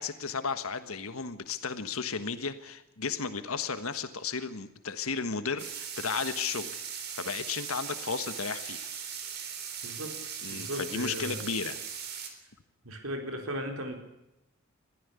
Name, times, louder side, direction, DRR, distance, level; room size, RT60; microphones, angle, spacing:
voice 1, 0.0-6.7 7.2-8.9 10.4-11.8, left 5 dB, 85° left, 11 dB, 1.4 m, -34 dB
sound 1, 5.6-12.3, right 7 dB, 50° right, 3.8 m, -39 dB
voice 2, 9.8-10.2 10.5-11.4 12.8-14.0, equal, 90° right, 4 dB, 4.2 m, -36 dB
22.5 x 15.0 x 8.2 m, 0.89 s
head